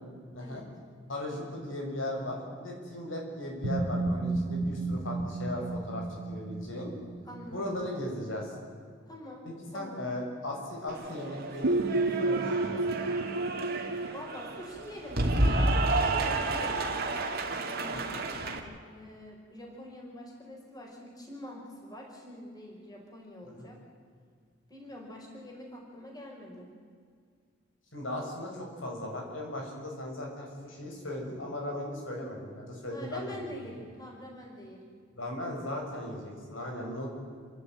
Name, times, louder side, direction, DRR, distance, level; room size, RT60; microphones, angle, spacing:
voice 1, 0.3-0.6 1.1-6.9 7.5-8.6 9.4-13.0 17.9-18.2 23.4-23.7 27.9-33.6 35.1-37.1, left 1 dB, 80° left, 0 dB, 6.5 m, -37 dB
sound 1, 3.6-7.6 11.6-14.1, right 2 dB, 85° right, 1.6 m, -31 dB
voice 2, 7.2-7.8 9.1-9.4 9.7-10.0 14.1-17.0 17.6-23.8 24.7-26.7 32.9-34.8, equal, 20° left, -1 dB, 5.2 m, -45 dB
Cheering / Applause, 10.9-18.6, right 2 dB, 55° right, 2.5 m, -31 dB
30.0 x 12.0 x 9.2 m, 2.1 s
head